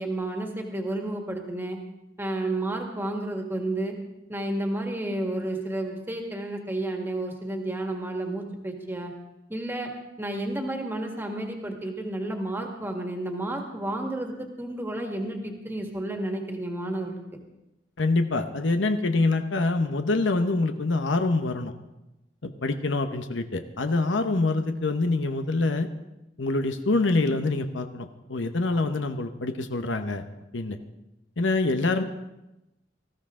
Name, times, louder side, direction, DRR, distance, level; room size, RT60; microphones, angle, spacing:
voice 1, 0.0-1.8 2.2-4.0 4.3-9.1 9.5-9.9 10.2-17.2, right 1 dB, 10° right, 3 dB, 1.8 m, -31 dB
voice 2, 18.0-21.7 22.4-25.9 26.4-30.2 30.5-30.8 31.4-32.0, left 3 dB, 90° left, 8 dB, 0.9 m, -25 dB
19.5 x 14.5 x 3.8 m, 0.94 s
head